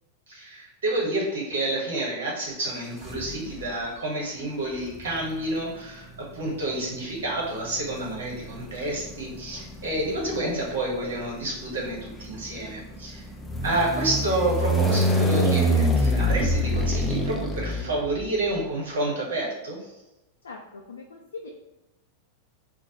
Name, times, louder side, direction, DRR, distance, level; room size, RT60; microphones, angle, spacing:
voice 1, 0.3-13.3 13.6-19.9, right 2 dB, 60° right, -3 dB, 1.3 m, -29 dB
sound 1, 3.0-3.7 4.8-18.5, equal, 10° left, 0.5 m, -27 dB
voice 2, 20.4-21.5, left 4 dB, 70° left, 0 dB, 0.4 m, -41 dB
3.9 x 2.2 x 4.3 m, 0.96 s
figure-of-eight pair, 90°, 0 cm